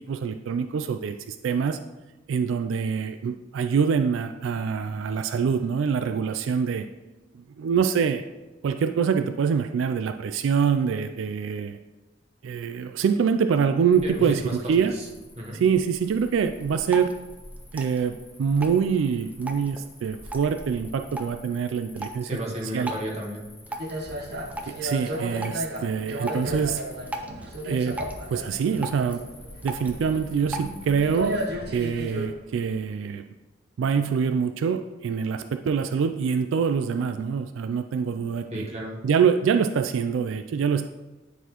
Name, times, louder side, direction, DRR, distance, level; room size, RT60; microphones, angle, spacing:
voice 1, 0.1-1.8 2.3-6.9 7.6-8.2 8.6-11.8 12.4-14.9 15.5-17.1 17.7-22.3 22.6-22.9 24.8-26.8 27.6-28.0 28.3-29.2 29.6-31.4 31.7-33.2 33.8-38.7 39.0-40.9, right 6 dB, 85° right, 8 dB, 0.3 m, -25 dB
Cricket, 13.9-32.8, left 1 dB, 20° left, 1.3 m, -49 dB
voice 2, 14.0-14.6 15.4-15.6 22.2-23.4 38.5-39.0, equal, 35° right, -1 dB, 1.1 m, -33 dB
Drip, 16.5-31.0, right 1 dB, 10° right, 0.5 m, -40 dB
sound 1, 23.8-32.3, equal, 60° right, 0.8 m, -34 dB
9.2 x 4.0 x 3.0 m, 1.1 s
head